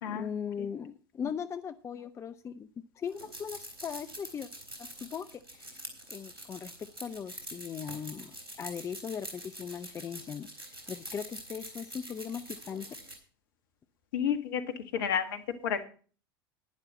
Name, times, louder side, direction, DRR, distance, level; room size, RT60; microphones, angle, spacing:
voice 1, 0.1-2.7 2.9-4.5 4.8-13.0, left 7 dB, 25° left, 13 dB, 0.6 m, -39 dB
sound 1, 3.0-13.2, right 1 dB, 80° right, 3.7 m, -45 dB
voice 2, 14.1-15.9, left 8 dB, 60° left, 9 dB, 1.8 m, -31 dB
11.5 x 10.5 x 4.2 m, 0.39 s
figure-of-eight pair, 75°, 12 cm